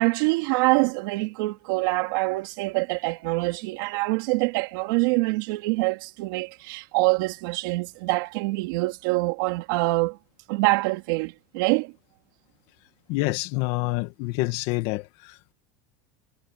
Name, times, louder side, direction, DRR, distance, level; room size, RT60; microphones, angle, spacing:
voice 1, 0.0-10.2 10.5-11.9, right 24 dB, 70° right, 2.6 m, -25 dB
voice 2, 13.1-15.5, left 20 dB, 60° left, 1.7 m, -27 dB
supercardioid pair, 140°, 11 cm